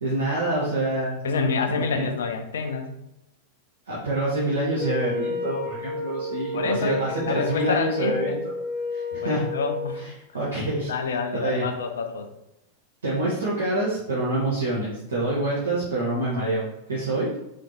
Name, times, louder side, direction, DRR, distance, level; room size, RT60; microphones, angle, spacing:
voice 1, 0.0-1.2 1.7-2.0 3.9-8.5 8.9-9.5 9.9-10.9 11.3-11.6 13.0-17.3, right 2 dB, 70° right, -7 dB, 1.0 m, -26 dB
voice 2, 1.2-2.9 6.5-8.4 9.2-10.0 10.9-12.3, left 4 dB, 65° left, 7 dB, 0.4 m, -28 dB
Wind instrument woodwind instrument, 4.8-10.0, left 4 dB, 10° right, 1.2 m, -31 dB
4.1 x 3.2 x 2.8 m, 0.88 s
figure-of-eight pair, 90°, 0 cm